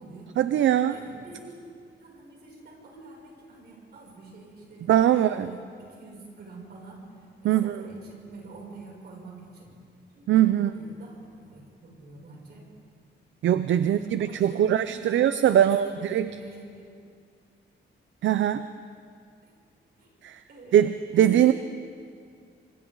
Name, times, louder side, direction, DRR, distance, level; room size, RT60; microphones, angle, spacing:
voice 1, 0.4-1.0 4.9-5.5 7.4-7.8 10.3-10.7 13.4-16.3 18.2-18.6 20.2-20.4 20.7-21.5, right 11 dB, 80° right, 11 dB, 0.6 m, -21 dB
voice 2, 0.9-9.7 10.1-12.7 13.8-15.2 15.6-16.9 19.4-19.5 20.0-20.1 20.5-21.5, right 3 dB, 55° right, -2 dB, 6.9 m, -46 dB
28.0 x 25.5 x 3.9 m, 2.3 s
wide cardioid pair, 145°, 20 cm